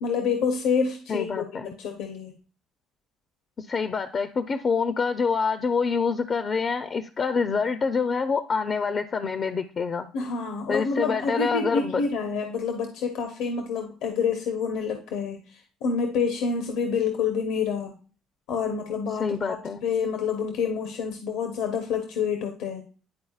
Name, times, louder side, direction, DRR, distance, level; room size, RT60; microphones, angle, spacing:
voice 1, 0.0-1.5 1.8-2.3 10.1-18.0 18.5-22.8, left 5 dB, 80° left, 4 dB, 0.9 m, -28 dB
voice 2, 1.1-1.7 3.6-10.1 10.7-12.0 19.2-19.8, left 5 dB, 45° left, 9 dB, 0.5 m, -26 dB
10.5 x 4.0 x 2.4 m, 0.38 s
supercardioid pair, 80°, 0 cm